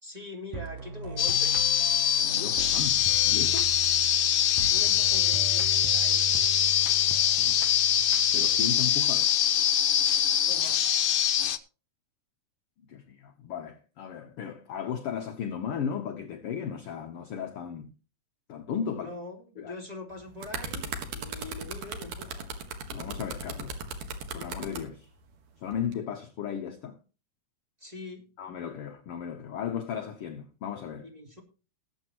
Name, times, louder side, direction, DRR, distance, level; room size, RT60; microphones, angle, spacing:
voice 1, 0.0-1.6 4.4-6.3 10.5-10.9 19.0-22.5 27.8-28.2 31.0-31.4, left 2 dB, 10° right, 3.1 m, -43 dB
sound 1, 0.5-8.6, right 3 dB, 60° right, 2.1 m, -39 dB
sound 2, 1.2-11.6, left 10 dB, 85° left, 1.1 m, -24 dB
voice 2, 2.2-3.7 7.4-7.6 8.3-9.3 12.9-17.9 18.5-19.1 19.6-19.8 22.9-23.8 24.3-25.1 25.6-27.0 28.4-31.1, left 8 dB, 65° left, 1.4 m, -35 dB
sound 3, 20.1-24.8 25.7-25.9, right 4 dB, 85° right, 3.2 m, -37 dB
20.0 x 8.1 x 3.1 m
omnidirectional pair, 3.7 m